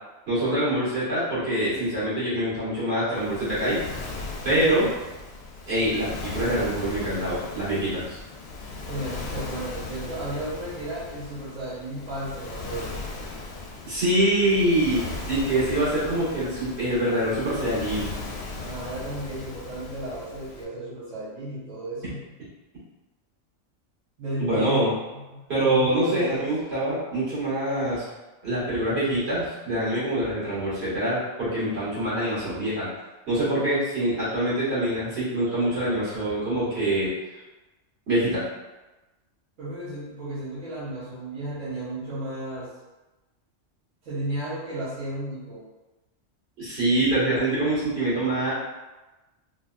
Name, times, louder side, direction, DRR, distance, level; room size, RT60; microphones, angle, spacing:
voice 1, 0.3-3.8 4.4-4.9 5.7-8.2 13.8-18.1 24.4-24.9 25.5-28.0 28.4-32.9 33.3-37.1 38.1-38.4 46.6-48.5, right 1 dB, 55° right, -10 dB, 1.9 m, -25 dB
Waves surf, 3.1-20.6, left 3 dB, 65° left, 0.7 m, -37 dB
voice 2, 4.5-4.9 8.9-13.0 18.6-22.2 24.2-26.5 39.6-42.7 44.0-45.6, right 1 dB, 85° right, -11 dB, 1.5 m, -34 dB
3.8 x 2.3 x 2.4 m, 1.1 s
omnidirectional pair, 1.3 m